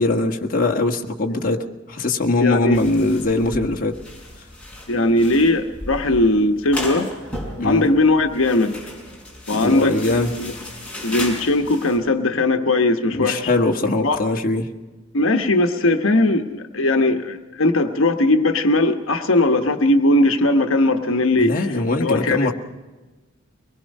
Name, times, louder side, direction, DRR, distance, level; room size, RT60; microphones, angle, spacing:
voice 1, 0.0-4.0 7.6-7.8 9.5-10.4 13.1-14.7 21.4-22.5, left 2 dB, 45° left, 2 dB, 1.5 m, -21 dB
voice 2, 2.4-2.8 4.9-7.1 7.6-8.8 9.5-10.0 10.4-10.5 11.0-13.5 14.0-14.2 15.1-22.4, left 2 dB, 80° left, 6 dB, 1.2 m, -19 dB
sound 1, 2.7-12.0, left 1 dB, 5° left, 5.6 m, -35 dB
23.5 x 20.5 x 5.5 m, 1.2 s
head